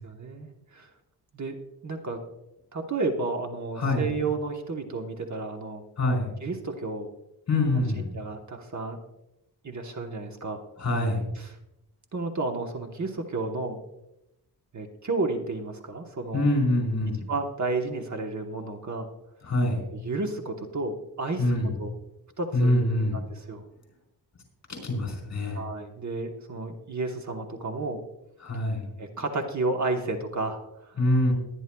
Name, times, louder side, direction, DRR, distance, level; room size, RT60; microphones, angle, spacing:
voice 1, 0.0-0.9 1.3-1.6 1.8-2.2 2.7-5.8 6.4-7.1 8.1-9.0 9.6-10.6 11.3-11.6 12.1-13.8 14.7-16.5 17.3-19.1 19.9-21.5 21.8-21.9 22.4-22.8 23.3-23.6 25.5-28.0 29.0-31.0, right 3 dB, 45° right, 3 dB, 1.1 m, -32 dB
voice 2, 6.0-6.3 7.5-8.1 10.8-11.2 16.3-17.2 19.4-19.8 21.4-21.7 22.5-23.2 24.7-25.6 28.4-28.9 31.0-31.3, left 1 dB, 45° left, 1 dB, 4.2 m, -25 dB
20.5 x 10.0 x 2.3 m, 0.89 s
wide cardioid pair, 160°, 40 cm